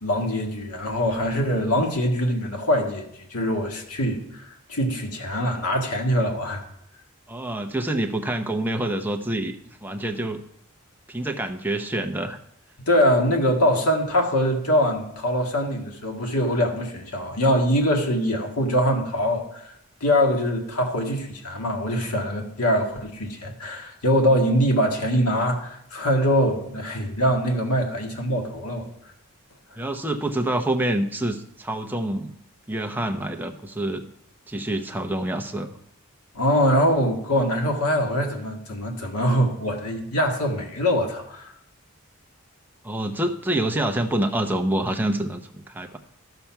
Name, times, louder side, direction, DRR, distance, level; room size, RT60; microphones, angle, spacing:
voice 1, 0.0-6.6 12.9-19.7 20.0-28.9 36.3-41.5, equal, 90° left, 2 dB, 1.8 m, -23 dB
voice 2, 7.3-9.6 9.8-10.4 11.1-12.4 29.7-32.3 32.7-34.0 34.5-35.7 42.8-46.0, right 1 dB, 10° right, 5 dB, 0.7 m, -26 dB
13.0 x 6.9 x 5.8 m, 0.76 s
head